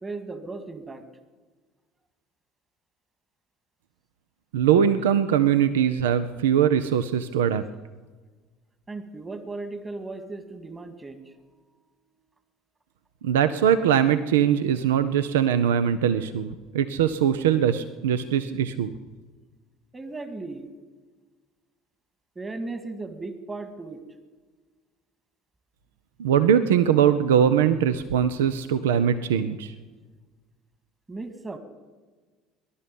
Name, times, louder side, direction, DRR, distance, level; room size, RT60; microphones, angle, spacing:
voice 1, 0.0-1.0 8.9-11.3 19.9-20.7 22.4-24.0 31.1-31.6, right 3 dB, 20° right, 8 dB, 2.0 m, -36 dB
voice 2, 4.5-7.6 13.2-18.9 26.2-29.7, right 9 dB, 80° right, 12 dB, 0.6 m, -21 dB
20.0 x 11.5 x 5.4 m, 1.4 s
hypercardioid pair, 65°, 0 cm